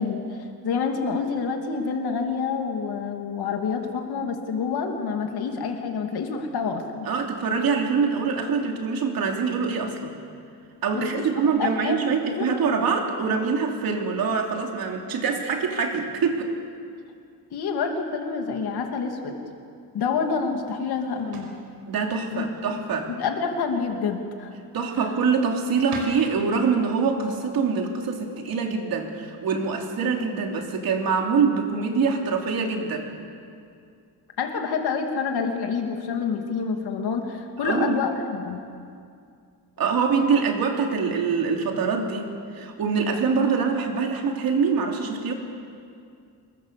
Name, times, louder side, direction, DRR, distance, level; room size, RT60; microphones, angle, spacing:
voice 1, 0.0-7.1 10.9-11.3 11.6-12.5 17.5-19.4 19.9-21.6 22.3-22.5 23.2-24.5 34.4-38.6, left 5 dB, 65° left, 3 dB, 2.7 m, -27 dB
voice 2, 7.1-10.1 10.8-16.5 21.9-23.1 24.7-33.1 37.6-38.0 39.8-45.3, right 5 dB, 60° right, 2 dB, 3.1 m, -24 dB
sound 1, 20.1-29.3, right 2 dB, 75° right, 5.0 m, -47 dB
26.5 x 22.0 x 7.0 m, 2.3 s
cardioid pair, 180°, 41 cm